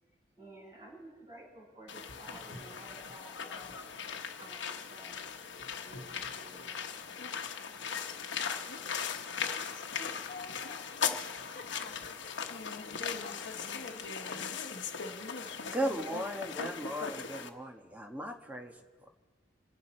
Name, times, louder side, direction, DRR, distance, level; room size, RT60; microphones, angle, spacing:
voice 1, 0.4-3.8 4.4-5.5 5.8-6.9, right 1 dB, 25° right, -5 dB, 6.8 m, -53 dB
sound 1, 1.9-17.5, left 6 dB, 75° left, 1.1 m, -39 dB
voice 2, 9.6-11.2 11.5-13.9 14.2-14.8, left 4 dB, 50° left, 1 dB, 1.0 m, -49 dB
voice 3, 15.6-19.1, right 1 dB, 10° right, 3 dB, 1.2 m, -37 dB
27.5 x 11.0 x 4.3 m, 1.4 s
head